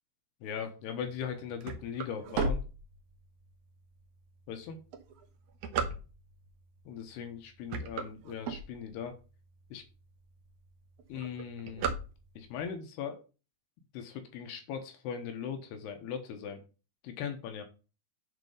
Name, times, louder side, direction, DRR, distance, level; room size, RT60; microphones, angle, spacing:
voice 1, 0.4-2.6 4.5-4.8 6.9-9.2 9.7-9.8 11.1-11.9 12.4-13.2 13.9-16.6 17.0-17.6, left 7 dB, 75° left, 6 dB, 3.0 m, -39 dB
sound 1, 1.2-3.4 4.0-4.1 4.8-6.5 7.1-7.3 7.6-9.2 9.7-9.8 10.0-10.1 10.4-10.7 11.0-12.6, right 4 dB, 75° right, 1.8 m, -34 dB
8.0 x 4.4 x 5.4 m, 0.33 s
omnidirectional pair, 5.0 m